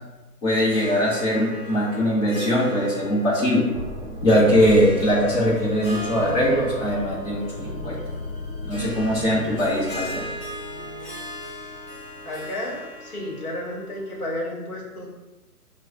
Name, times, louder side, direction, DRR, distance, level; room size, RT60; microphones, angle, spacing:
voice 1, 0.4-3.6 4.2-8.0 8.6-10.2, equal, 50° left, -6 dB, 1.0 m, -21 dB
Harp, 0.6-14.3, equal, 20° left, 1.3 m, -38 dB
sound 1, 3.7-12.6, left 2 dB, 20° right, 0.5 m, -36 dB
voice 2, 12.2-15.1, left 1 dB, 70° left, -3 dB, 1.3 m, -32 dB
6.1 x 2.3 x 2.2 m, 1.1 s
figure-of-eight pair, 130°, 47 cm